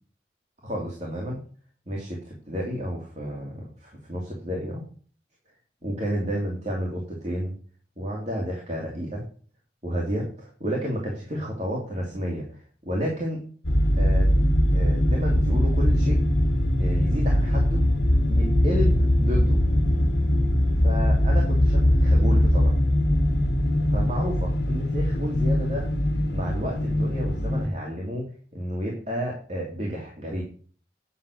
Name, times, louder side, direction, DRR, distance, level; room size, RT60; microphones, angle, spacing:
voice 1, 0.6-1.4 1.9-4.8 5.8-7.5 8.0-9.2 9.8-12.5 12.8-13.4 14.0-14.3 14.7-16.2 16.8-17.8 18.3-19.6 20.8-22.7 23.9-25.9 26.3-30.4, equal, 40° right, -2 dB, 2.7 m, -31 dB
sound 1, 13.6-27.7, left 1 dB, 80° left, 1.7 m, -21 dB
9.8 x 6.7 x 6.3 m, 0.43 s
head